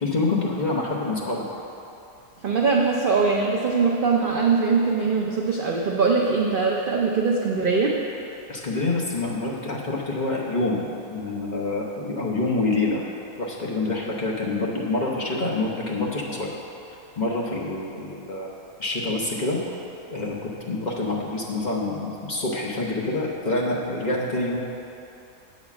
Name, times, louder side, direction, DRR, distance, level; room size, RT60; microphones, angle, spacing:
voice 1, 0.0-1.4 8.5-13.0 13.4-16.5 17.2-18.5 18.8-19.8 20.1-24.6, left 2 dB, 35° left, -4 dB, 0.9 m, -26 dB
voice 2, 2.4-8.0, right 4 dB, 55° right, -2 dB, 0.6 m, -22 dB
8.6 x 4.1 x 7.1 m, 2.7 s
omnidirectional pair, 1.5 m